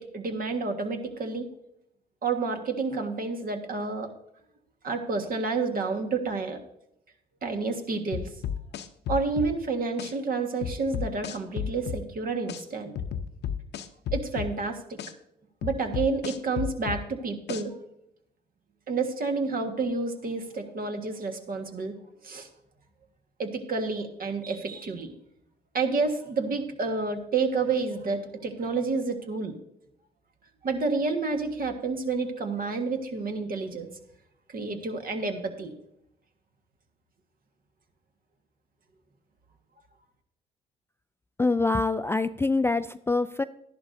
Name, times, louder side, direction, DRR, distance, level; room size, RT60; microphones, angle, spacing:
voice 1, 0.0-1.5 2.2-4.1 4.8-6.6 7.4-8.3 9.1-13.0 14.1-15.0 15.6-17.8 18.9-21.9 22.2-22.5 23.4-25.1 25.7-29.6 30.6-33.9 34.5-35.7, right 4 dB, 50° right, 5 dB, 1.6 m, -29 dB
sound 1, 8.1-9.5 10.0-10.1 10.6-12.0 12.5-12.6 13.0-14.5 15.0-15.1 15.6-17.0 17.5-17.6, left 8 dB, 60° left, 0.7 m, -32 dB
voice 2, 41.4-43.4, left 3 dB, 15° left, 11 dB, 0.3 m, -25 dB
12.5 x 11.0 x 2.7 m, 0.78 s
hypercardioid pair, 55°, 20 cm